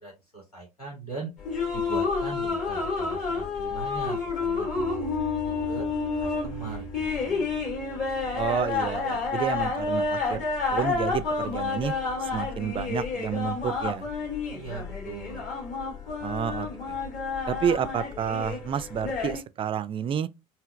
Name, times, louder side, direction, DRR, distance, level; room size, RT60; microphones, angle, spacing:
voice 1, 0.0-1.3 1.7-4.9 5.2-5.3 5.7-5.9 6.2-7.5 14.5-15.5, right 4 dB, 90° left, 1.9 m, -40 dB
sound 1, 1.4-19.4, left 4 dB, 45° left, 2.1 m, -30 dB
sound 2, 4.7-9.8, right 5 dB, 30° left, 1.1 m, -39 dB
voice 2, 8.3-10.4 10.7-11.9 12.2-14.1 16.2-17.0 17.5-20.3, right 8 dB, 30° right, 0.4 m, -30 dB
4.9 x 2.7 x 2.4 m
figure-of-eight pair, 65°, 19 cm